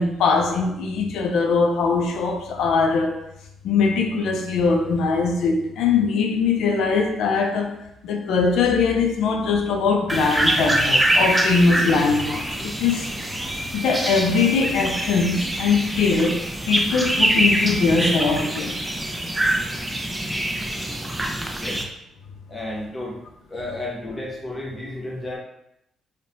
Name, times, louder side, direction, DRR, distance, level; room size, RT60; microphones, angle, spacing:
voice 1, 0.0-3.2 3.6-13.1 13.7-18.8, left 4 dB, 80° left, 3 dB, 0.4 m, -21 dB
sound 1, 10.1-21.8, right 1 dB, 10° right, 0.3 m, -24 dB
voice 2, 21.5-21.8 22.5-23.2 23.5-25.4, left 1 dB, 20° left, -3 dB, 0.7 m, -32 dB
2.7 x 2.1 x 2.6 m, 0.80 s
cardioid pair, 90°, 0 cm